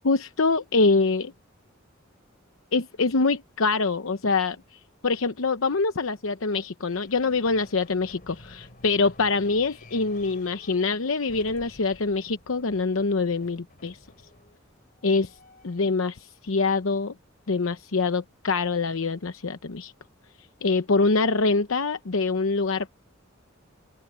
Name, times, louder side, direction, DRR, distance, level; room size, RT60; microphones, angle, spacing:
voice 1, 0.0-1.3 2.7-14.0 15.0-15.4 15.6-17.1 17.5-19.9 20.6-22.9, left 3 dB, 85° left, 0.8 m, -25 dB
sound 1, 6.9-16.0, left 1 dB, 45° left, 4.4 m, -52 dB
open air
head